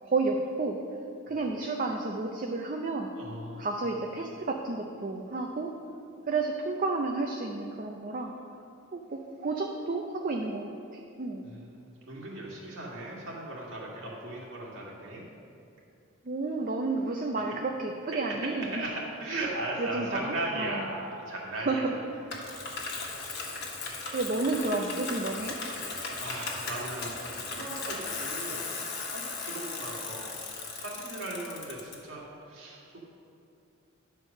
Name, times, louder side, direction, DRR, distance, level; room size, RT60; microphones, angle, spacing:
voice 1, 0.0-0.8 1.3-3.1 3.6-5.7 6.3-8.3 8.9-11.5 16.2-18.9 19.8-20.9 21.6-21.9 24.1-25.6, right 3 dB, 40° right, 1 dB, 0.5 m, -31 dB
voice 2, 3.1-3.7 11.4-15.3 18.1-18.2 18.7-18.9 19.2-22.0 22.5-22.7 25.8-28.7 29.1-30.4 30.7-33.0, right 1 dB, 70° right, -4 dB, 2.1 m, -38 dB
Bicycle, 22.3-31.9, left 4 dB, 50° left, 1.3 m, -37 dB
10.5 x 4.5 x 6.5 m, 2.6 s
head